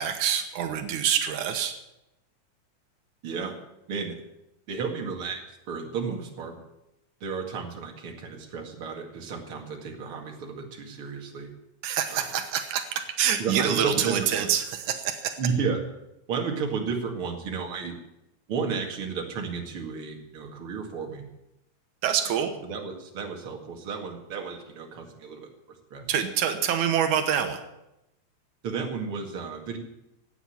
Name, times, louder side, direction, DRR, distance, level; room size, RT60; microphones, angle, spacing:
voice 1, 0.0-1.7 11.8-15.4 22.0-22.5 26.1-27.6, right 8 dB, 90° right, 7 dB, 2.6 m, -26 dB
voice 2, 3.2-3.6 3.9-4.2 4.7-6.6 7.2-11.5 12.1-12.2 13.4-14.5 15.4-15.8 16.3-18.0 18.5-21.2 22.4-25.5 25.9-26.1 28.6-29.8, right 5 dB, 50° right, 2 dB, 2.8 m, -32 dB
17.0 x 8.0 x 8.8 m, 0.89 s
omnidirectional pair, 3.4 m